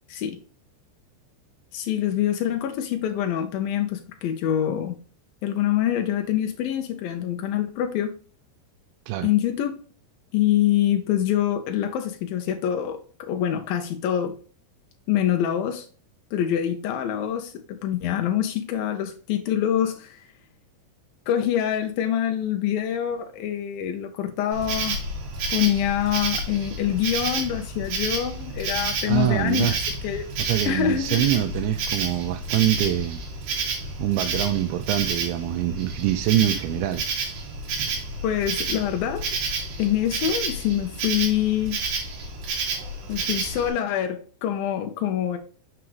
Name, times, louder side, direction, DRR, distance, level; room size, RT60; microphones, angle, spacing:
voice 1, 1.7-5.0 5.4-8.1 9.2-9.7 10.3-14.4 15.1-15.9 16.3-20.3 21.3-25.0 25.5-29.8 30.0-30.3 30.7-31.3 38.2-39.2 39.8-41.8 43.1-45.4, left 10 dB, 90° left, 2.0 m, -25 dB
Insect, 24.5-43.7, right 3 dB, 65° right, 3.7 m, -30 dB
voice 2, 29.1-29.7 30.1-33.2 34.0-37.0, right 13 dB, 85° right, 2.8 m, -24 dB
7.5 x 6.0 x 3.0 m
omnidirectional pair, 5.3 m